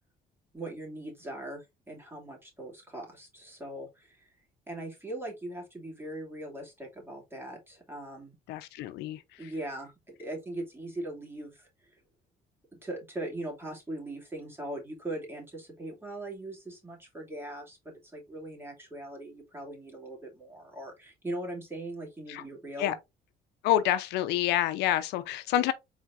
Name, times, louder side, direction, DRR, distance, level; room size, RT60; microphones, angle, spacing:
voice 1, 0.5-4.3 4.7-8.3 9.4-12.0 12.8-23.0, right 1 dB, 15° right, 2.5 m, -40 dB
voice 2, 8.5-9.5 22.3-22.4 22.8-23.0 23.6-25.7, left 13 dB, 85° left, 0.7 m, -28 dB
4.6 x 4.3 x 2.5 m
cardioid pair, 110°, 17 cm